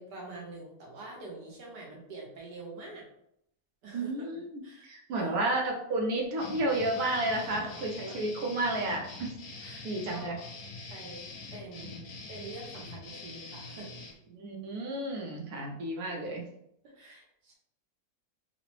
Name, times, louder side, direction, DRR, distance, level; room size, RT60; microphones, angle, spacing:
voice 1, 0.0-3.0 3.8-4.3 4.6-5.4 7.3-8.2 9.6-10.4 10.9-11.2 11.5-13.9 16.8-17.6, right 2 dB, 85° right, -3 dB, 1.6 m, -46 dB
voice 2, 3.9-9.3 9.8-10.4 14.3-16.4, right 1 dB, 70° right, 0 dB, 1.1 m, -32 dB
sound 1, 6.4-14.1, left 3 dB, 70° left, 1.1 m, -44 dB
3.9 x 2.1 x 3.0 m, 0.75 s
omnidirectional pair, 1.8 m